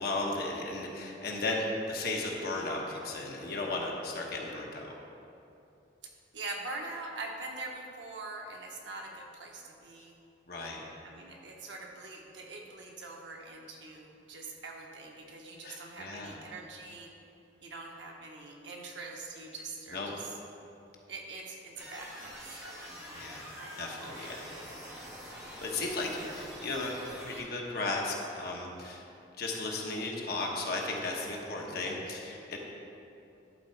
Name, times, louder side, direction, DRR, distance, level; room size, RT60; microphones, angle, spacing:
voice 1, 0.0-4.9 10.5-10.8 15.6-16.3 19.9-20.1 23.1-23.5 23.8-24.4 25.6-26.9 27.2-29.0 29.4-32.6, left 2 dB, 55° left, -1 dB, 1.1 m, -35 dB
voice 2, 6.3-10.2 11.0-17.1 17.6-20.3 21.1-22.8 23.6-24.9 26.2-26.4, right 3 dB, 75° right, 0 dB, 1.1 m, -44 dB
sound 1, 21.8-27.4, equal, 15° right, 1.5 m, -45 dB
11.5 x 3.9 x 4.6 m, 2.7 s
head